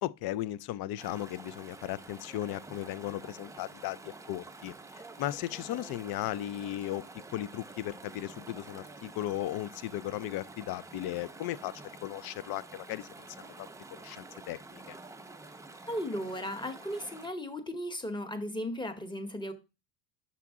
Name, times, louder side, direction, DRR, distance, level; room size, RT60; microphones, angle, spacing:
voice 1, 0.0-7.0 7.3-11.7 12.0-15.0, left 14 dB, 55° left, 0.5 m, -36 dB
Chatter / Stream, 1.0-17.3, right 3 dB, 5° right, 0.4 m, -49 dB
voice 2, 15.9-19.5, equal, 10° left, 1.0 m, -36 dB
7.2 x 5.7 x 3.6 m
cardioid pair, 135°, 47 cm